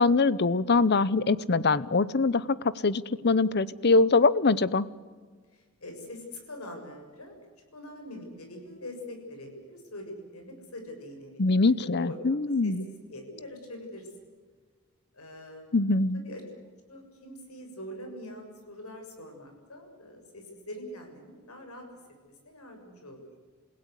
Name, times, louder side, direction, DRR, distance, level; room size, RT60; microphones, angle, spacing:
voice 1, 0.0-4.9 11.4-12.8 15.7-16.2, left 3 dB, 50° left, 18 dB, 0.8 m, -23 dB
voice 2, 5.5-12.1 12.6-14.1 15.1-15.9 16.1-16.4 16.9-21.9 22.2-23.2, left 1 dB, 85° left, 4 dB, 6.8 m, -44 dB
28.5 x 17.0 x 8.1 m, 1.5 s
head